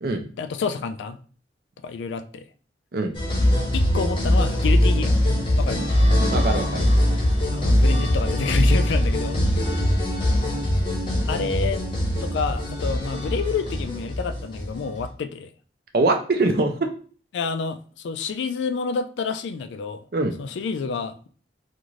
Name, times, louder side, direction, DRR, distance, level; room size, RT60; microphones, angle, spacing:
voice 1, 0.4-1.2 1.8-2.4 3.7-5.2 5.6-5.8 7.5-9.8 10.4-10.5 11.3-11.8 12.2-15.5 17.3-20.0 20.4-21.3, left 5 dB, 75° left, 0.3 m, -29 dB
sound 1, 3.1-15.0, left 1 dB, 30° left, 0.8 m, -21 dB
voice 2, 6.3-6.9 15.9-16.7 20.1-20.3, right 2 dB, 55° right, 0.4 m, -22 dB
2.5 x 2.5 x 3.0 m
head